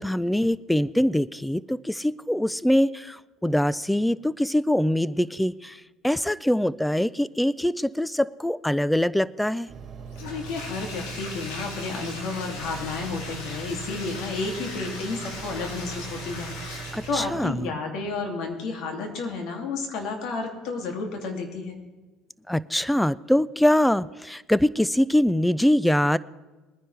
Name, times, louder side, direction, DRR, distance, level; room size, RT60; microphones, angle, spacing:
voice 1, 0.0-5.8 6.0-9.7 16.9-17.6 22.5-26.2, left 1 dB, 5° left, 20 dB, 0.4 m, -23 dB
sound 1, 9.7-17.7, right 5 dB, 45° right, 2.3 m, -40 dB
Bathtub (filling or washing), 10.1-17.4, left 2 dB, 80° left, 2.9 m, -39 dB
voice 2, 10.2-21.8, left 4 dB, 65° left, 3 dB, 2.4 m, -32 dB
20.5 x 10.0 x 3.3 m, 1.2 s
supercardioid pair, 95°, 0 cm